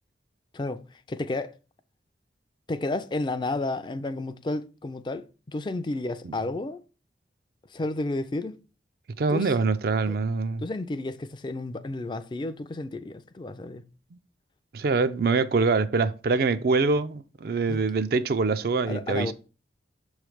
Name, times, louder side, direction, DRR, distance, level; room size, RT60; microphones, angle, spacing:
voice 1, 1.1-1.5 2.7-6.8 7.7-8.5 9.3-9.5 10.1-10.2 10.6-13.8 17.7-17.8 18.9-19.3, left 2 dB, 25° left, 0.4 m, -31 dB
voice 2, 9.2-10.6 14.7-19.3, right 4 dB, 55° right, 0.4 m, -24 dB
6.8 x 3.2 x 4.9 m
head